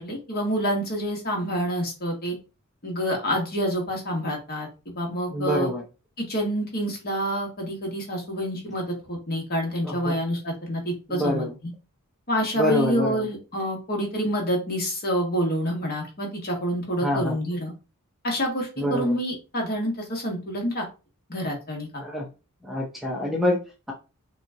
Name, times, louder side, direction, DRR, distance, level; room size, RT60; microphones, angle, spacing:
voice 1, 0.0-2.3 2.8-5.7 6.2-11.7 12.3-17.7 18.2-20.8 21.3-22.0, equal, 45° left, 0 dB, 1.5 m, -27 dB
voice 2, 5.3-5.8 9.8-9.9 11.1-11.5 12.6-13.2 17.0-17.4 18.8-19.1 22.0-22.3 22.7-23.6, left 1 dB, ahead, -1 dB, 0.7 m, -25 dB
5.6 x 2.4 x 2.8 m, 0.31 s
head